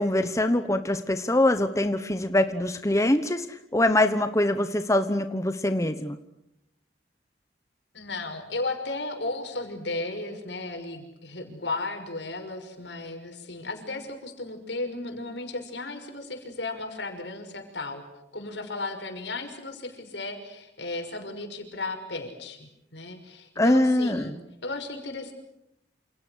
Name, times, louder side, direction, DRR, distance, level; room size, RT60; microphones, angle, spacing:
voice 1, 0.0-6.2 23.6-24.4, left 1 dB, 15° left, 9 dB, 1.1 m, -23 dB
voice 2, 7.9-18.0 18.3-24.3 24.6-25.3, left 2 dB, 75° left, 5 dB, 6.0 m, -35 dB
28.5 x 28.5 x 6.5 m, 0.83 s
head